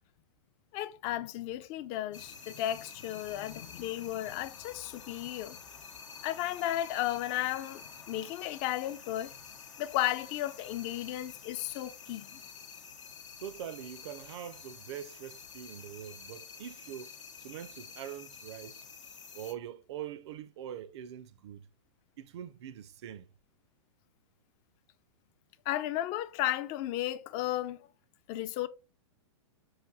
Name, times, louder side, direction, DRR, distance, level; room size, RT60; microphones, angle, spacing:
voice 1, 0.7-5.6 6.2-9.3 9.8-12.4 25.7-27.9 28.3-28.7, left 13 dB, 35° left, 0.4 m, -34 dB
sound 1, 2.1-19.5, left 6 dB, 85° left, 0.7 m, -49 dB
voice 2, 13.4-17.1 17.4-18.8 19.3-21.7 22.2-23.3, right 10 dB, 65° right, 0.4 m, -43 dB
5.7 x 2.6 x 2.3 m
hypercardioid pair, 125°, 16 cm